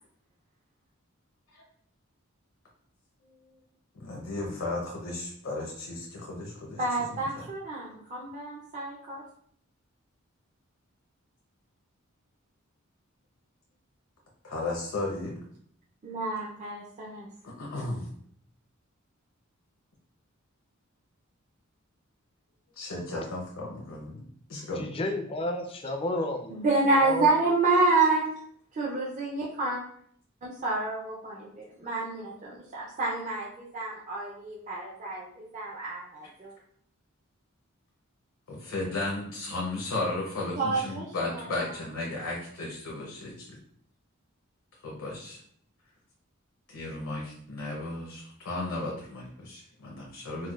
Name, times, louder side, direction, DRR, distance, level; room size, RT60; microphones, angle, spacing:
voice 1, 3.9-6.8 7.1-7.5 14.4-15.4 17.4-18.1 22.8-24.9 36.2-36.3 38.5-43.6 44.8-45.4 46.7-50.5, left 2 dB, 70° left, -3 dB, 0.6 m, -35 dB
voice 2, 6.8-9.2 16.0-17.3 26.5-28.3 28.8-29.8 30.4-36.5 40.6-41.5, right 3 dB, 35° right, -5 dB, 0.5 m, -28 dB
voice 3, 24.7-27.3, left 1 dB, 25° left, 4 dB, 0.4 m, -32 dB
4.2 x 2.1 x 2.3 m, 0.64 s
head